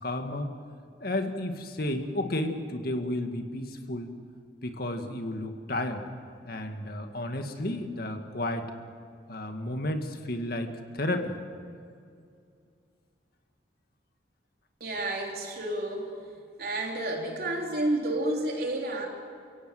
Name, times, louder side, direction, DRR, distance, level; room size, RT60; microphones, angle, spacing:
voice 1, 0.0-0.5 1.0-4.1 4.6-6.0 6.4-8.7 9.3-11.4, left 1 dB, 55° left, 5 dB, 1.9 m, -32 dB
voice 2, 14.8-19.1, right 1 dB, 55° right, 0 dB, 4.0 m, -31 dB
29.0 x 17.0 x 7.9 m, 2.3 s
head